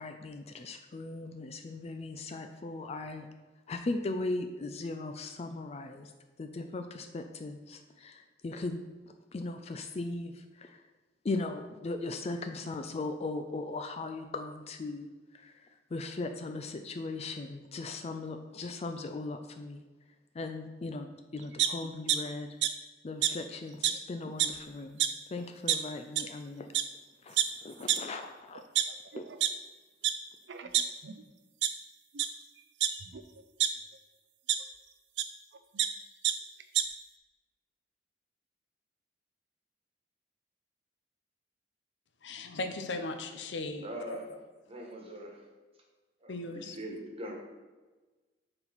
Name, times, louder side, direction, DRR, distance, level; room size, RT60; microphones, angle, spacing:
voice 1, 0.0-3.3 3.7-6.1 6.4-10.8 11.2-19.8 20.3-22.6 23.0-25.0 25.3-26.7 27.2-28.6 29.2-29.3, left 2 dB, 35° left, 0.4 m, -38 dB
sound 1, 21.6-22.2 22.6-22.7 23.2-23.3 23.8-23.9 24.2-24.6 25.0-25.1 25.7-25.8 26.2-26.3 26.7-26.8 27.4-27.5 27.9-28.0 28.5-29.5 30.0-30.1 30.5-31.2 31.6-31.7 32.1-32.3 32.8-33.7 34.5-34.6 35.2-35.3 35.5-35.9 36.2-36.3 36.6-36.8, right 11 dB, 75° right, 0.5 m, -27 dB
voice 2, 42.2-44.2 46.3-46.8, left 2 dB, 80° left, 0.7 m, -37 dB
voice 3, 43.8-44.2 44.7-45.4 46.2-47.4, right 1 dB, 35° right, 1.4 m, -42 dB
6.6 x 4.4 x 5.7 m
head